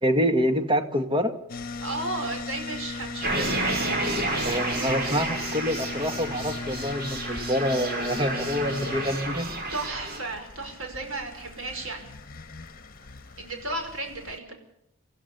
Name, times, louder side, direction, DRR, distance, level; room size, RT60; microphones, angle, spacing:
voice 1, 0.0-1.4 4.4-9.5, equal, 20° right, 7 dB, 1.9 m, -26 dB
sound 1, 1.5-14.4, left 3 dB, 40° left, 1.3 m, -38 dB
voice 2, 1.8-4.1 9.7-12.0 13.4-14.6, right 2 dB, 65° right, 4 dB, 5.5 m, -34 dB
sound 2, 3.2-10.2, right 2 dB, 45° right, 4.9 m, -31 dB
26.5 x 15.5 x 7.0 m, 0.78 s
head